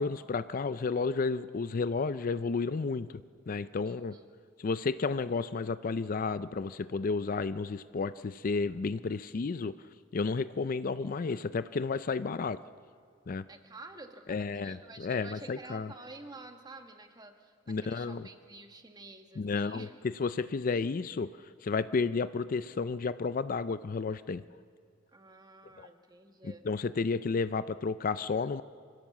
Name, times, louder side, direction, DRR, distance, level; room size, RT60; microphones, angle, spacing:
voice 1, 0.0-3.1 3.5-4.2 4.6-9.7 10.1-12.6 13.3-13.4 14.3-15.9 17.7-18.2 19.4-19.9 20.2-21.3 21.6-24.4 25.8-25.9 26.4-28.6, left 4 dB, 45° left, 14 dB, 0.4 m, -32 dB
voice 2, 3.8-4.3 13.5-19.9 25.1-26.7, right 2 dB, 20° right, 5 dB, 1.5 m, -50 dB
24.5 x 16.0 x 7.3 m, 2.1 s
head